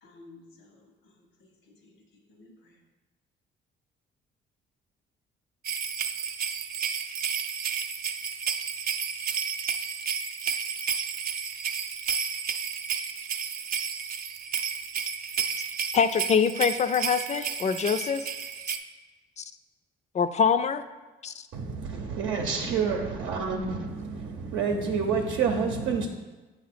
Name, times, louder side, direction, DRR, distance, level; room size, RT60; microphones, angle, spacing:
voice 1, 0.0-2.0 2.3-2.8, left 2 dB, 90° left, 3 dB, 1.3 m, -54 dB
sound 1, 5.6-18.8, right 6 dB, 50° right, 0.5 m, -32 dB
voice 2, 15.9-18.3 19.4-19.5 20.1-20.8 21.2-21.4, left 6 dB, 35° left, 11 dB, 0.4 m, -24 dB
voice 3, 21.5-26.1, right 5 dB, 85° right, 1 dB, 0.7 m, -28 dB
8.1 x 2.8 x 5.9 m, 1.2 s
cardioid pair, 90°, 20 cm